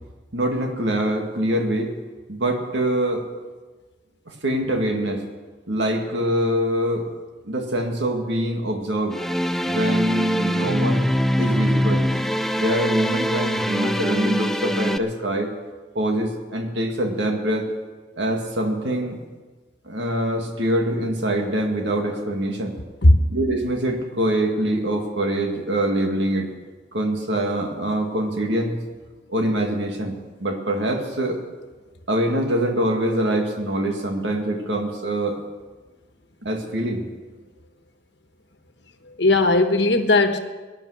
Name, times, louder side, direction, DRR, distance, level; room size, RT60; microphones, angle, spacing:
voice 1, 0.3-1.9 2.3-3.3 4.3-5.2 5.7-7.1 7.4-9.2 9.7-11.1 11.4-12.0 12.6-15.5 15.9-17.7 18.2-19.2 19.8-22.8 23.3-26.5 26.9-28.8 29.3-31.4 32.1-35.4 36.4-37.1, right 1 dB, 80° right, 3 dB, 2.1 m, -24 dB
sound 1, 9.1-15.0, equal, ahead, 0.4 m, -23 dB
voice 2, 39.1-40.4, left 2 dB, 75° left, 7 dB, 1.3 m, -17 dB
17.5 x 10.5 x 6.4 m, 1.3 s
head